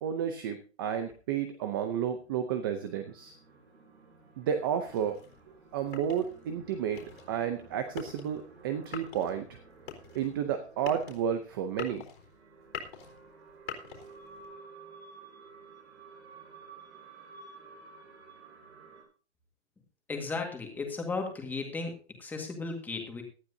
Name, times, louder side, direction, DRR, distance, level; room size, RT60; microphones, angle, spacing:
voice 1, 0.0-3.3 4.4-5.2 5.7-7.0 7.3-9.5 10.1-12.0, right 8 dB, 20° right, 8 dB, 0.6 m, -31 dB
sound 1, 2.1-11.3 12.0-19.0, right 4 dB, 70° right, 7.8 m, -53 dB
sound 2, 4.8-14.5, left 7 dB, 60° left, 4.0 m, -45 dB
voice 2, 20.1-23.2, left 3 dB, 5° left, 2 dB, 1.8 m, -35 dB
18.0 x 12.0 x 2.7 m, 0.36 s
hypercardioid pair, 170°, 34 cm